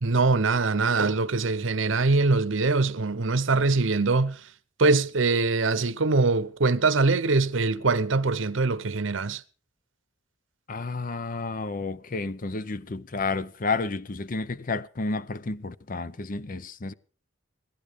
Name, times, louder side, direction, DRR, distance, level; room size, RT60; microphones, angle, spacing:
voice 1, 0.0-4.4 4.8-9.4, right 3 dB, 70° right, 0.8 m, -23 dB
voice 2, 10.7-16.9, left 3 dB, 40° left, 0.6 m, -31 dB
17.0 x 13.0 x 5.1 m
head